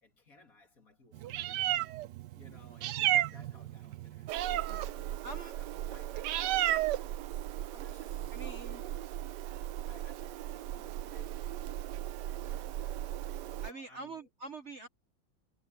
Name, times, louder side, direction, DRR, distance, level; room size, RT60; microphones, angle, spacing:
voice 1, 0.0-1.8 2.3-7.3 7.7-8.9 9.9-11.8 12.4-13.0 13.4-14.3, left 2 dB, 40° left, 3.0 m, -60 dB
Meow, 1.1-13.7, right 13 dB, 70° right, 1.1 m, -35 dB
voice 2, 5.2-5.5 8.3-8.8 13.6-14.9, right 3 dB, 35° right, 1.5 m, -44 dB
omnidirectional pair, 2.3 m